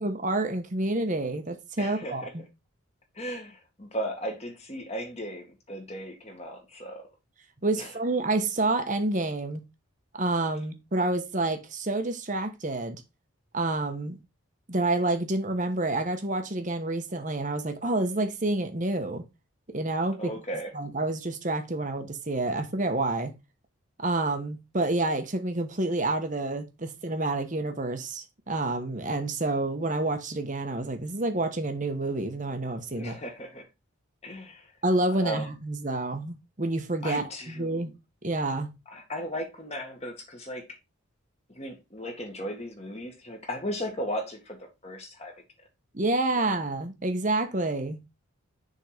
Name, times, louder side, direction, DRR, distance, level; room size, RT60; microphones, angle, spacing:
voice 1, 0.0-2.4 7.6-9.6 10.1-13.0 13.5-14.2 14.7-19.2 19.7-20.3 20.7-23.4 24.0-33.2 34.8-37.9 38.2-38.8 45.9-48.0, right 2 dB, 35° right, 1.1 m, -28 dB
voice 2, 1.8-2.3 3.2-7.1 7.8-7.9 20.2-20.7 32.9-33.7 34.2-34.7 35.1-35.5 37.0-37.8 38.9-40.7 41.5-45.4, equal, 30° left, 1.8 m, -36 dB
6.7 x 3.8 x 4.9 m
head